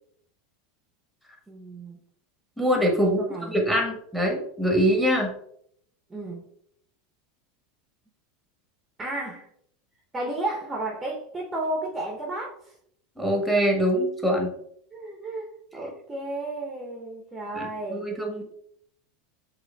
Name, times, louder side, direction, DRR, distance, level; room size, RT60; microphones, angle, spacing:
voice 1, 1.5-2.0 3.0-3.7 6.1-6.5 9.0-9.5 10.1-12.7 14.9-18.1, right 2 dB, 15° right, -1 dB, 0.8 m, -33 dB
voice 2, 2.6-3.2 3.5-5.3 13.2-14.5 17.5-18.4, equal, ahead, 0 dB, 1.2 m, -24 dB
6.7 x 2.4 x 2.3 m, 0.68 s
figure-of-eight pair, 80°, 0 cm